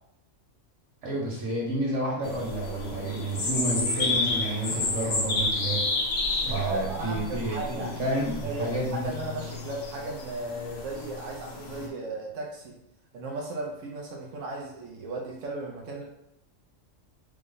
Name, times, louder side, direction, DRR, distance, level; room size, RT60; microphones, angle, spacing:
voice 1, 1.0-5.8 6.4-9.0, right 1 dB, 65° right, -4 dB, 1.7 m, -30 dB
sound 1, 2.2-11.9, left 2 dB, 70° left, 1.1 m, -31 dB
voice 2, 6.4-12.7 13.1-16.0, right 2 dB, 80° right, -1 dB, 1.1 m, -35 dB
4.7 x 2.1 x 3.8 m, 0.82 s
omnidirectional pair, 1.3 m